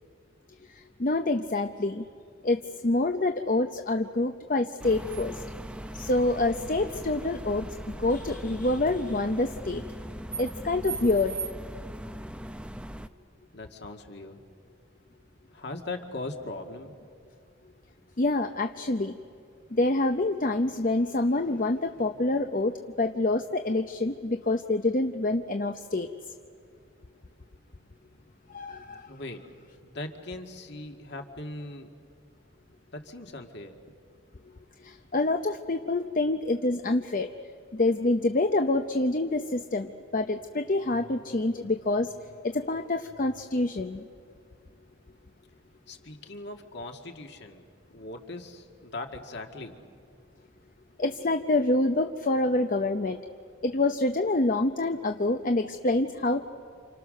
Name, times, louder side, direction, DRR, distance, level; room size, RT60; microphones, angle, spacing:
voice 1, 1.0-2.0 2.4-5.4 5.9-7.7 8.0-9.8 10.4-11.4 18.2-19.1 19.7-26.1 28.5-29.0 34.8-37.3 37.7-42.1 42.4-44.0 51.0-53.2 53.6-56.4, left 2 dB, 40° left, 7 dB, 0.7 m, -26 dB
sound 1, 4.8-13.1, right 1 dB, 5° right, 0.6 m, -39 dB
voice 2, 13.5-14.4 15.5-17.1 29.1-29.4 29.8-31.9 32.9-34.0 45.9-47.6 47.9-49.8, left 2 dB, 55° left, 4 dB, 2.1 m, -40 dB
29.0 x 27.5 x 6.5 m, 2.3 s
head